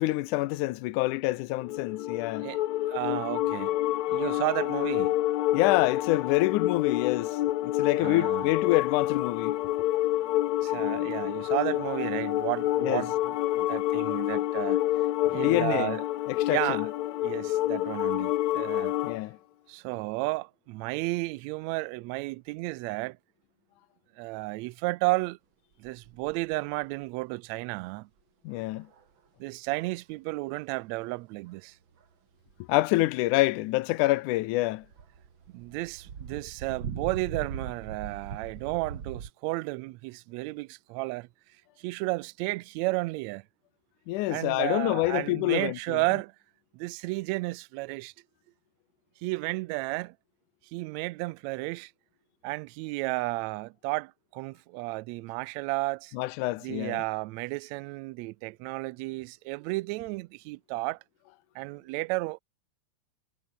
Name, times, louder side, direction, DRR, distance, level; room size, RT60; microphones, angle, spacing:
voice 1, 0.0-2.5 5.5-9.6 12.8-13.0 15.2-16.0 16.3-16.9 19.0-19.4 28.5-28.9 32.7-34.9 44.1-46.0 56.1-57.0, left 18 dB, 90° left, 2.2 m, -27 dB
sound 1, 1.6-19.2, left 14 dB, 75° left, 2.1 m, -28 dB
voice 2, 2.9-3.8 4.1-5.1 8.0-8.5 10.6-14.8 15.3-16.0 16.5-16.9 17.2-18.9 19.7-23.2 24.2-25.4 25.8-28.1 29.4-31.8 35.5-41.3 41.8-43.4 44.3-46.3 46.7-48.1 49.2-50.1 50.7-51.9 52.4-56.1 56.6-61.0 61.5-62.4, right 23 dB, 80° right, 1.7 m, -32 dB
sound 2, 25.8-26.6 26.8-26.9 28.5-29.0 29.7-29.9 30.5-30.6 31.0-31.1 32.0-32.1 32.5-32.6 34.5-34.6 34.8-39.3, right 7 dB, 45° right, 2.5 m, -40 dB
omnidirectional pair, 3.5 m